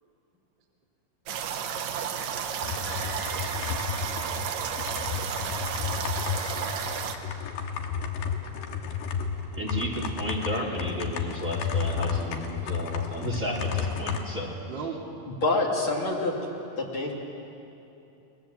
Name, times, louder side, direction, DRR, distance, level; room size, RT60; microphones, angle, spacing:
sound 1, 1.3-7.1, right 8 dB, 75° right, 2.0 m, -32 dB
sound 2, 1.9-7.1, equal, 25° left, 6.3 m, -45 dB
voice 1, 2.3-2.6 3.5-4.0 4.3-4.6 6.0-6.5 7.2-7.6 8.0-8.1 8.4-9.5 14.7-15.0, right 6 dB, 40° right, -1 dB, 1.7 m, -44 dB
sound 3, 2.6-14.2, left 7 dB, 65° left, 3.0 m, -32 dB
voice 2, 9.5-14.5, equal, 25° right, -2 dB, 2.0 m, -33 dB
voice 3, 15.4-16.3 16.8-17.1, left 2 dB, 40° left, -2 dB, 2.0 m, -26 dB
29.0 x 20.0 x 7.5 m, 2.8 s
omnidirectional pair, 5.5 m